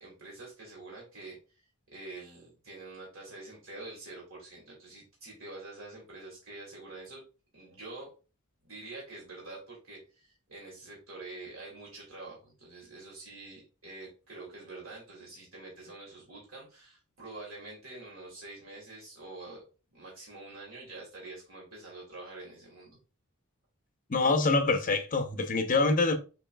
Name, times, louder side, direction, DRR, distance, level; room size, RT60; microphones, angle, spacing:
voice 1, 0.0-1.4 1.9-7.2 7.5-8.1 8.6-19.6 19.9-23.0, right 2 dB, 70° right, 2.2 m, -46 dB
voice 2, 24.1-26.1, left 3 dB, 40° left, 0.7 m, -25 dB
7.1 x 2.9 x 2.2 m
head